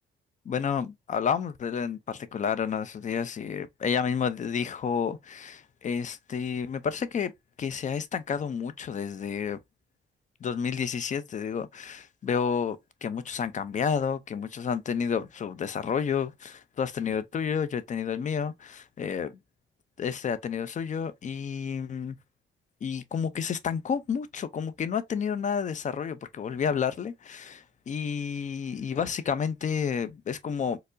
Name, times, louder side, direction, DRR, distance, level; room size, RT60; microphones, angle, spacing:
voice 1, 0.5-7.3 7.6-9.6 10.4-19.3 20.0-22.2 22.8-30.8, left 7 dB, 40° left, 0.5 m, -30 dB
4.3 x 2.0 x 2.5 m
cardioid pair, 90°, 20 cm